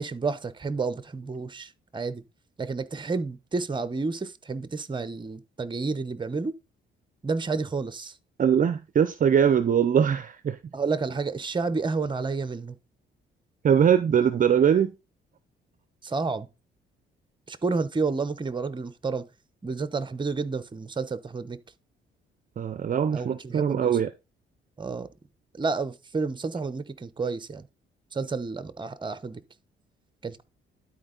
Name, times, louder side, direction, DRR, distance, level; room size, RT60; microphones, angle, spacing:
voice 1, 0.0-2.2 2.6-6.5 7.2-8.2 10.7-12.8 16.0-16.5 17.5-19.3 19.6-21.6 23.1-24.0 24.8-25.1 25.5-27.7 28.1-29.4 30.2-30.4, right 4 dB, 25° right, 0.9 m, -30 dB
voice 2, 8.4-10.6 13.6-14.9 22.6-24.1, right 8 dB, 45° right, 0.6 m, -22 dB
11.5 x 4.5 x 3.9 m
cardioid pair, 90°, 20 cm